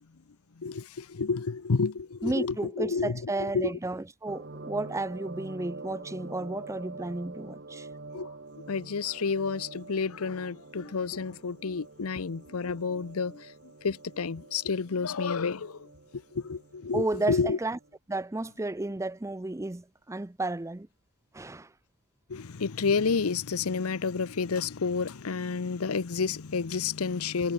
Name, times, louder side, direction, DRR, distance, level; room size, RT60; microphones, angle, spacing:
voice 1, 0.6-3.7 8.1-8.3 8.7-13.5 13.8-15.9 16.1-17.6 22.3-27.5, left 5 dB, 85° left, 0.7 m, -30 dB
voice 2, 2.2-7.9 16.9-17.8 18.1-20.9 21.3-21.7, right 2 dB, 15° right, 0.5 m, -32 dB
sound 1, 4.3-18.0, right 3 dB, 55° right, 1.8 m, -46 dB
head